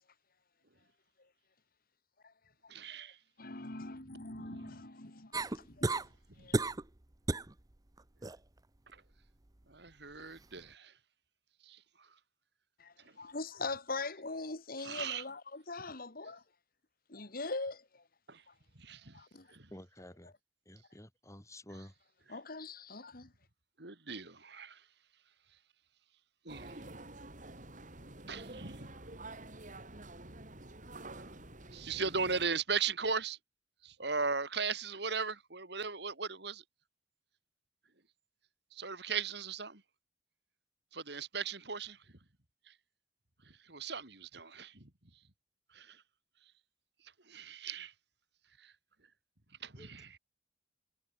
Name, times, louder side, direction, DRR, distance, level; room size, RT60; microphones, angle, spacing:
voice 1, 2.7-3.2 4.3-4.8 5.9-6.0 6.4-6.5 8.9-9.0 9.7-10.9 11.6-11.8 14.8-15.2 18.3-18.4 18.8-19.2 19.5-19.7 23.8-24.8 26.5-26.8 28.3-28.9 31.2-31.3 31.7-33.4 33.8-36.6 38.7-39.8 40.9-42.0 42.7-42.8 43.6-44.9 45.7-46.0 47.3-47.9 48.6-48.7 49.6-50.2, right 5 dB, 65° right, 3.7 m, -38 dB
voice 2, 3.4-6.1 6.4-6.7 12.8-16.4 17.1-18.0 19.1-19.5 22.3-23.3, left 3 dB, 55° left, 2.4 m, -42 dB
sound 1, 5.3-6.1 6.5-6.9 7.3-7.5 8.0-8.4 10.2-10.3, right 2 dB, 20° right, 0.8 m, -33 dB
voice 3, 19.7-20.3 20.7-21.9 49.8-49.9, left 1 dB, 15° left, 5.7 m, -51 dB
sound 2, 26.5-32.5, right 2 dB, 45° right, 7.9 m, -49 dB
head